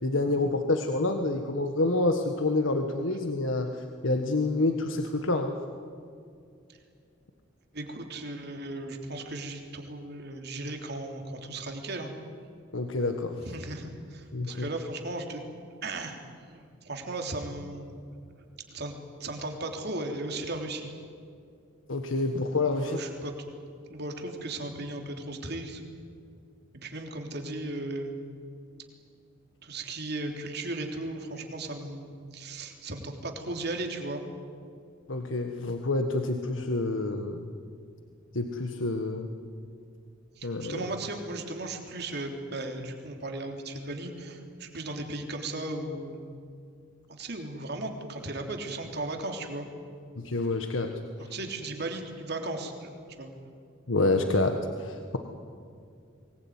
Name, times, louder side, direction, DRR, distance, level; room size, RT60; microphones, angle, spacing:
voice 1, 0.0-5.5 12.7-13.4 14.3-14.7 21.9-23.0 35.1-37.5 38.3-39.3 40.4-40.8 50.2-50.9 53.9-55.2, left 2 dB, 85° left, 5 dB, 1.5 m, -28 dB
voice 2, 7.7-12.1 13.4-16.2 16.5-18.0 18.7-18.9 19.2-20.9 22.8-23.3 23.9-25.8 26.8-28.2 29.6-34.2 40.4-46.2 47.2-49.7 51.2-52.9 53.2-53.3, right 2 dB, 55° right, 3 dB, 3.4 m, -36 dB
24.0 x 20.0 x 9.6 m, 2.4 s
head